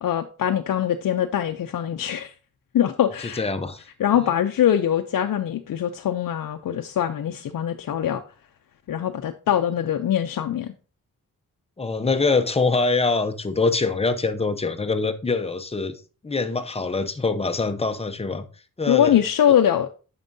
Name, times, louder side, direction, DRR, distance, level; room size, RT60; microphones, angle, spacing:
voice 1, 0.0-2.3 2.7-3.4 4.0-8.2 8.9-10.7 18.9-19.9, left 10 dB, 70° left, 0.5 m, -22 dB
voice 2, 3.4-3.8 11.8-18.4 18.8-19.2, left 3 dB, 20° left, 0.6 m, -24 dB
9.0 x 6.0 x 2.6 m
wide cardioid pair, 125°, 34 cm